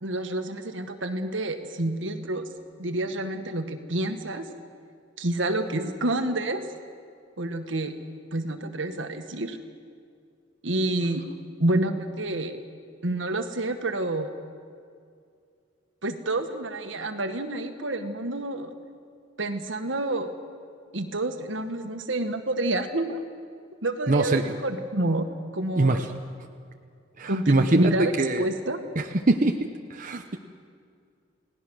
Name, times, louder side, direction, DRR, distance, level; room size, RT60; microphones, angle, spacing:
voice 1, 0.0-2.5 2.8-4.5 5.2-6.7 7.4-7.9 8.3-9.6 10.6-11.2 11.6-12.6 13.0-14.3 16.0-18.7 19.4-20.3 20.9-23.2 23.8-25.3 25.5-26.1 27.3-28.1 28.4-28.8, right 1 dB, 75° right, 7 dB, 1.7 m, -28 dB
voice 2, 24.1-24.4 25.8-26.1 27.2-27.9 28.2-28.4 29.0-29.6 29.9-30.4, right 2 dB, 45° right, 4 dB, 0.9 m, -22 dB
30.0 x 18.0 x 6.4 m, 2.3 s
head